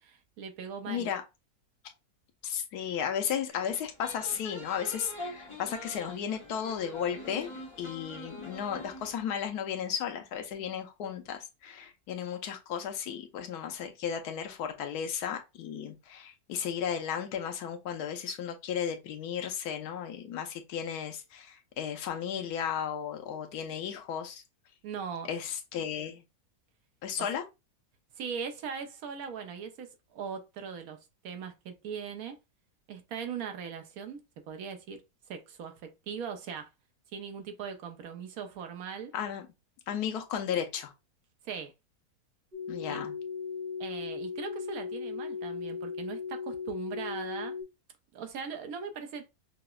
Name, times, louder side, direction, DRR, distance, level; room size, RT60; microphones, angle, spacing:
voice 1, 0.0-1.1 24.8-25.3 28.2-31.0 31.2-32.4 32.9-34.2 34.5-35.0 35.3-36.7 37.1-39.1 41.4-41.7 42.9-43.0 43.8-47.5 48.1-49.3, right 6 dB, 75° right, 1.1 m, -39 dB
voice 2, 0.9-1.2 2.4-7.5 7.8-24.4 25.3-26.2 27.0-27.4 39.1-39.5 39.9-40.9 42.7-43.1, left 8 dB, 90° left, 1.2 m, -34 dB
sound 1, 3.5-9.2, left 1 dB, 25° left, 0.7 m, -44 dB
sound 2, 42.5-47.6, left 5 dB, 50° right, 0.6 m, -37 dB
5.7 x 2.0 x 2.3 m
omnidirectional pair, 1.6 m